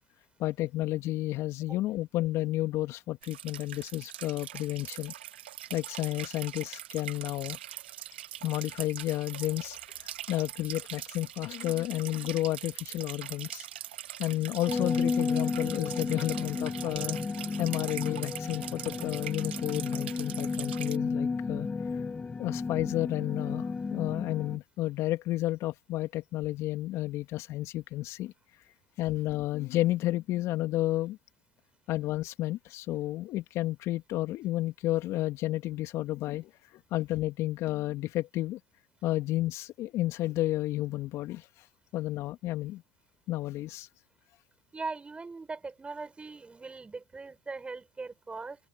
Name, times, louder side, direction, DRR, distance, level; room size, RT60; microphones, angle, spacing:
voice 1, 0.4-5.1 5.7-7.6 8.4-13.7 14.2-17.2 17.6-21.7 22.4-28.3 29.0-31.2 31.9-36.5 36.9-38.6 39.0-41.5 41.9-42.8 43.3-43.9, left 16 dB, 55° left, 2.9 m, -31 dB
sound 1, 3.2-21.0, right 12 dB, 80° right, 2.0 m, -42 dB
sound 2, 14.7-24.6, left 4 dB, 20° left, 2.1 m, -33 dB
voice 2, 44.7-48.6, right 3 dB, 20° right, 6.9 m, -40 dB
hypercardioid pair, 70°, 6 cm